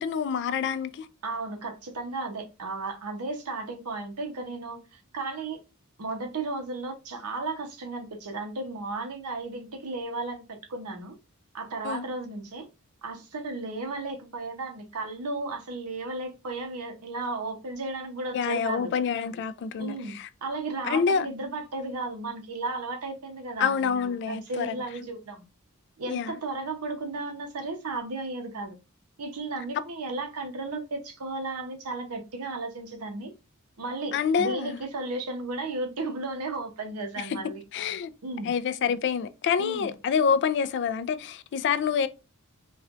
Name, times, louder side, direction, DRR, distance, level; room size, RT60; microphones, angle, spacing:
voice 1, 0.0-1.1 11.8-12.1 18.3-20.3 20.8-21.3 23.6-24.8 26.1-26.4 34.1-34.8 37.2-37.4 37.7-38.1 38.4-42.1, left 6 dB, 50° left, 0.3 m, -27 dB
voice 2, 1.2-5.6 6.0-11.1 11.5-12.7 13.0-18.9 19.8-25.5 26.0-28.8 29.2-33.3 33.8-37.6 38.2-38.5 39.6-39.9, right 3 dB, 80° right, 0.8 m, -34 dB
4.3 x 2.3 x 2.4 m
head